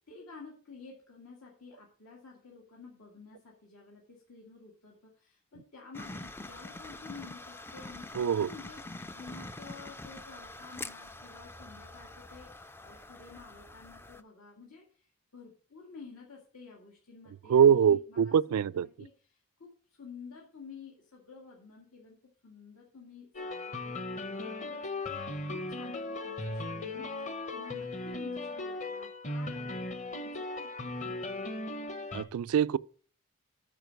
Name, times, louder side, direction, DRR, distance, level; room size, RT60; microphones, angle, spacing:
voice 1, 0.1-19.7 20.0-24.0 24.4-29.9 30.2-31.5, left 4 dB, 80° left, 2.0 m, -51 dB
sound 1, 5.9-14.2, left 2 dB, 10° left, 0.3 m, -45 dB
voice 2, 8.2-8.5 17.5-18.9 32.1-32.8, right 8 dB, 80° right, 0.3 m, -24 dB
sound 2, 23.3-32.2, left 2 dB, 35° left, 0.9 m, -37 dB
9.2 x 5.1 x 6.4 m
head